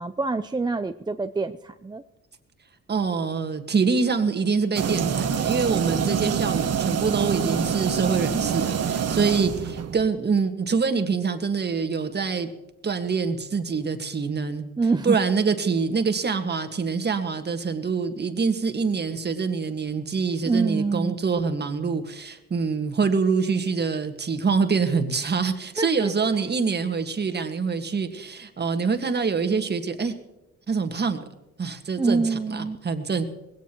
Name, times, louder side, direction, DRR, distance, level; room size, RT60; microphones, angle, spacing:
voice 1, 0.0-2.0 14.8-15.2 20.5-21.2 25.8-26.1 32.0-32.8, right 4 dB, 15° right, 9 dB, 0.5 m, -25 dB
voice 2, 2.9-12.5 12.8-14.6 15.0-30.1 30.7-31.2 31.6-33.3, right 5 dB, 35° right, 7 dB, 1.7 m, -25 dB
sound 1, 4.7-10.0, right 7 dB, 55° right, 1.3 m, -26 dB
20.5 x 17.0 x 3.0 m, 0.95 s
cardioid pair, 90°, 30 cm